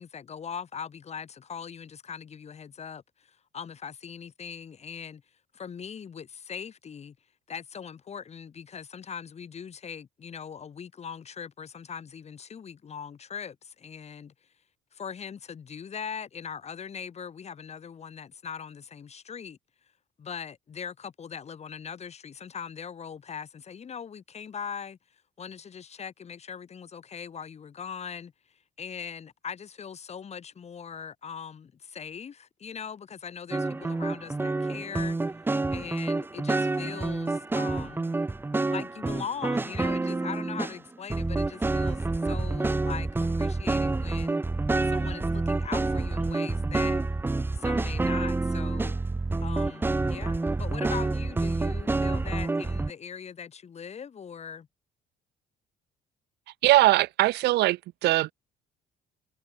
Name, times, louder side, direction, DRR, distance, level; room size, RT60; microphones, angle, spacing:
voice 1, 0.0-5.2 5.5-7.2 7.5-14.3 14.9-19.6 20.2-25.0 25.4-38.1 38.7-44.4 44.8-47.0 47.5-49.0 49.4-54.7, left 7 dB, 40° left, 7.1 m, -40 dB
sound 1, 33.5-40.8 41.1-52.9, right 3 dB, 10° right, 0.9 m, -28 dB
voice 2, 56.6-58.3, right 17 dB, 80° right, 2.2 m, -21 dB
cardioid pair, 110°, 17 cm